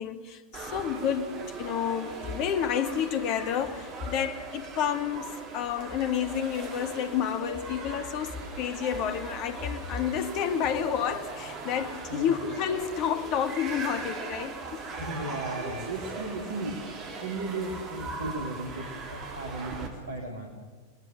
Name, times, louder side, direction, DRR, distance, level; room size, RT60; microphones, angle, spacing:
voice 1, 0.0-14.8, left 8 dB, 40° left, 1.6 m, -30 dB
sound 1, 0.5-19.9, right 4 dB, 35° right, 4.0 m, -39 dB
voice 2, 15.0-16.8 17.2-20.5, right 2 dB, 70° right, 2.7 m, -35 dB
30.0 x 19.5 x 6.3 m
figure-of-eight pair, 90°, 0 cm